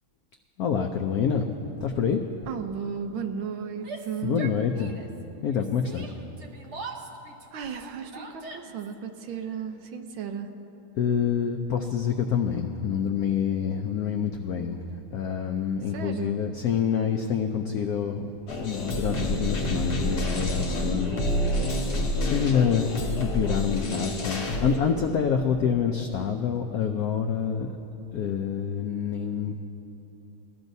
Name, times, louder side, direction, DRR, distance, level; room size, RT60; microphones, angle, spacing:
voice 1, 0.6-1.5 1.8-2.2 4.2-4.9 5.4-6.1 11.0-18.3 18.6-22.0 22.3-27.7 28.1-29.8, left 7 dB, 80° left, 4 dB, 0.8 m, -27 dB
voice 2, 2.5-4.5 7.5-10.5 15.9-16.4, right 7 dB, 75° right, 6 dB, 1.5 m, -34 dB
Yell, 3.7-5.2 5.5-8.9, right 4 dB, 45° right, 1.0 m, -42 dB
sound 1, 18.5-24.8, left 1 dB, 55° left, 2.0 m, -28 dB
21.0 x 14.0 x 2.7 m, 3.0 s
omnidirectional pair, 2.3 m